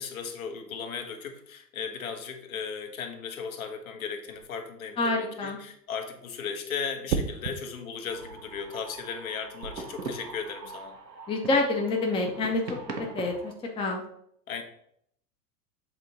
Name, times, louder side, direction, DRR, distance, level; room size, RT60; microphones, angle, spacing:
voice 1, 0.0-11.0 14.5-14.6, left 6 dB, 60° left, 5 dB, 1.2 m, -36 dB
sound 1, 4.3-4.6 7.1-7.6 9.6-9.9, right 6 dB, 55° right, 0.8 m, -31 dB
voice 2, 5.0-5.6 11.3-12.6 13.1-14.0, left 2 dB, 10° left, 2 dB, 0.7 m, -27 dB
sound 2, 8.1-13.5, right 3 dB, 90° right, 1.1 m, -41 dB
7.7 x 3.7 x 4.0 m, 0.70 s
figure-of-eight pair, 95°, 48 cm